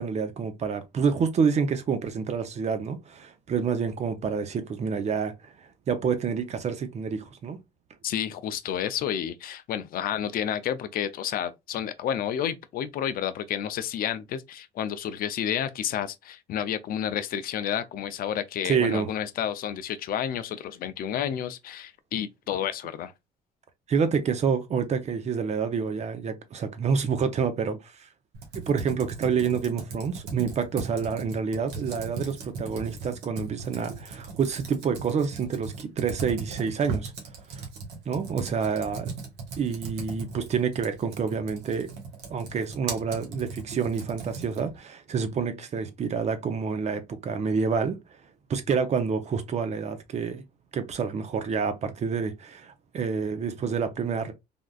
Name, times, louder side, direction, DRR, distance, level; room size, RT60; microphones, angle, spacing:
voice 1, 0.0-5.5 5.9-7.6 18.6-19.1 23.9-28.1 28.7-37.1 38.1-39.1 39.6-41.9 42.3-48.0 48.5-50.4 50.7-54.3, right 6 dB, 40° right, 0.6 m, -28 dB
voice 2, 8.0-23.1, left 9 dB, 60° left, 0.4 m, -30 dB
Computer keyboard, 28.3-44.8, right 4 dB, 90° right, 1.1 m, -38 dB
3.5 x 2.4 x 2.3 m
cardioid pair, 110°, 17 cm